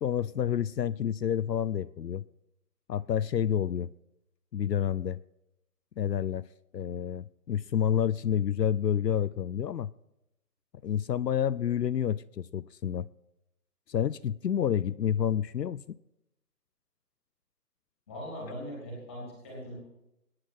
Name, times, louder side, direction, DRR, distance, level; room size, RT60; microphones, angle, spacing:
voice 1, 0.0-2.2 2.9-3.9 4.5-5.2 6.0-6.5 6.7-9.9 10.8-13.1 13.9-16.0, left 9 dB, 80° left, 0.6 m, -29 dB
voice 2, 18.1-19.7, equal, 10° left, 2.7 m, -40 dB
21.5 x 9.8 x 4.3 m
hypercardioid pair, 180°, 49 cm